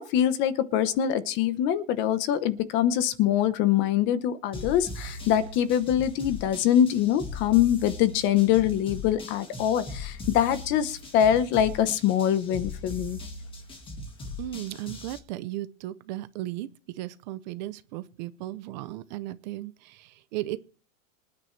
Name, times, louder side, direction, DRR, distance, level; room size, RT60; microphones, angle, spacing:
voice 1, 0.0-13.2, left 10 dB, 30° left, 14 dB, 0.9 m, -24 dB
sound 1, 4.5-15.2, left 2 dB, 15° left, 1.6 m, -40 dB
voice 2, 14.4-20.6, right 15 dB, 35° right, 14 dB, 0.6 m, -36 dB
26.0 x 9.7 x 3.3 m, 0.40 s
supercardioid pair, 165°, 40 cm